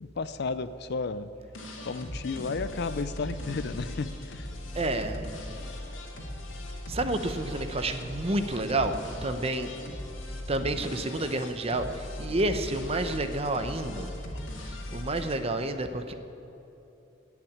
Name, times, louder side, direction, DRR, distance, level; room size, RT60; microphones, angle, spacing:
voice 1, 0.0-1.3 1.8-4.6, left 4 dB, 60° left, 13 dB, 0.5 m, -33 dB
sound 1, 1.5-15.3, left 1 dB, 85° left, 2.0 m, -39 dB
voice 2, 4.7-5.3 6.9-9.7 10.5-14.1 14.7-16.1, right 2 dB, 30° right, 8 dB, 0.8 m, -30 dB
17.5 x 5.9 x 9.4 m, 2.9 s
head